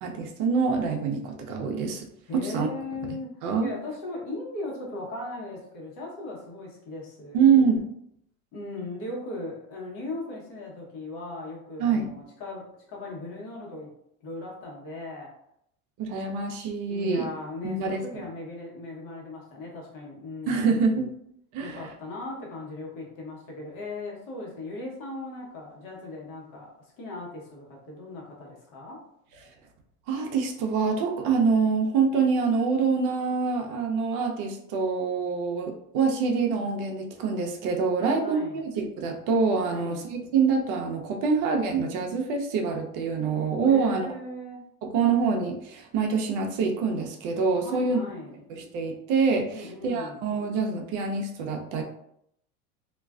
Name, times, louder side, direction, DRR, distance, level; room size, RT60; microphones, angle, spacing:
voice 1, 0.0-2.0 2.3-2.7 3.4-3.7 7.3-7.8 11.8-12.1 16.0-17.3 17.6-18.0 20.5-21.1 21.5-21.8 30.1-44.0 44.8-48.0 48.7-51.8, right 5 dB, 45° right, 3 dB, 0.6 m, -25 dB
voice 2, 2.3-3.3 3.6-7.5 8.5-13.9 14.2-15.3 16.9-20.7 21.6-29.0 38.0-38.7 39.7-40.1 43.6-44.6 47.6-48.4 49.5-50.2, left 2 dB, 45° left, -2 dB, 1.0 m, -38 dB
2.4 x 2.2 x 2.3 m, 0.74 s
hypercardioid pair, 105°, 44 cm